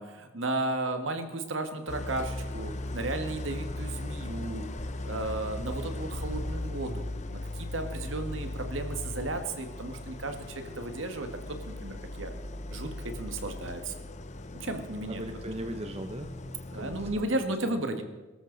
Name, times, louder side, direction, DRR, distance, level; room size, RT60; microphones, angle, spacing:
voice 1, 0.0-4.6 5.1-12.3 12.7-13.9 14.6-15.2 16.7-18.0, right 2 dB, 70° right, 6 dB, 1.8 m, -34 dB
Idling, 1.9-17.1, left 2 dB, 35° left, 0.8 m, -38 dB
voice 2, 15.1-17.8, right 1 dB, 30° right, 5 dB, 0.9 m, -39 dB
22.5 x 13.5 x 4.0 m, 1.2 s
head